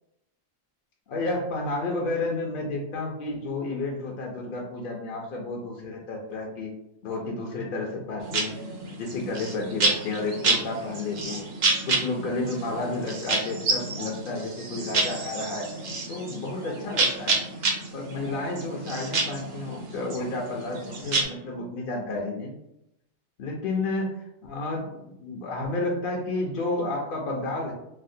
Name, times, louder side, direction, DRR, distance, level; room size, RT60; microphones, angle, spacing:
voice 1, 1.1-6.7 7.0-8.5 8.8-11.5 11.9-15.7 16.1-17.4 17.9-22.5 23.4-24.2 24.4-27.7, left 2 dB, 60° left, -1 dB, 0.6 m, -31 dB
sound 1, 8.2-21.2, right 3 dB, 60° right, 0.8 m, -29 dB
3.4 x 2.1 x 2.6 m, 0.83 s
omnidirectional pair, 1.3 m